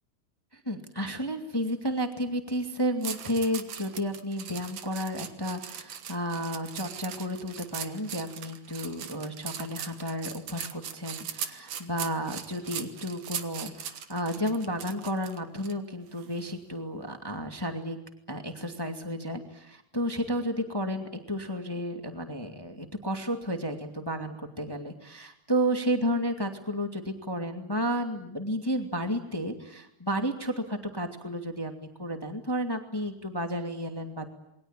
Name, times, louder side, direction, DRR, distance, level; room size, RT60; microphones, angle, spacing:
voice 1, 0.5-18.0 18.3-31.7 32.0-34.3, equal, 10° left, 5 dB, 1.7 m, -32 dB
sound 1, 3.0-15.7 16.2-16.4, right 9 dB, 65° right, 2.5 m, -39 dB
28.0 x 22.5 x 9.0 m, 0.81 s
omnidirectional pair, 3.6 m